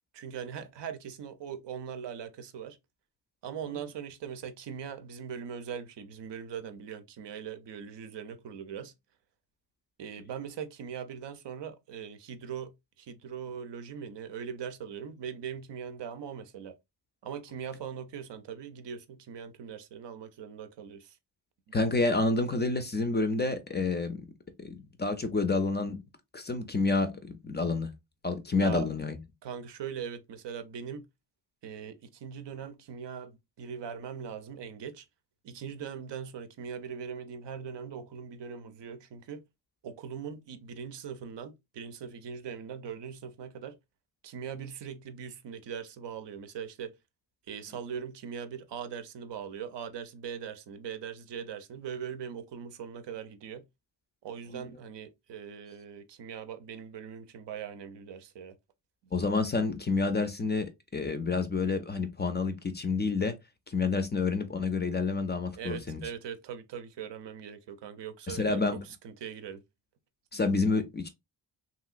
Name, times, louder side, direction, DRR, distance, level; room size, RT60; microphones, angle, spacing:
voice 1, 0.1-2.8 3.4-8.9 10.0-12.7 13.0-16.8 17.2-21.2 21.7-21.8 28.6-28.9 29.4-31.1 31.6-35.1 35.4-39.4 39.8-43.8 44.2-46.9 47.5-53.6 54.2-58.5 65.5-69.6 70.3-70.4, right 7 dB, 75° right, 0.6 m, -41 dB
voice 2, 21.7-24.3 24.6-26.0 26.3-27.9 28.2-29.2 54.5-54.6 59.1-63.3 63.7-66.0 68.3-68.8 70.3-71.1, left 3 dB, 25° left, 0.4 m, -29 dB
3.0 x 2.8 x 2.4 m
wide cardioid pair, 120°, 43 cm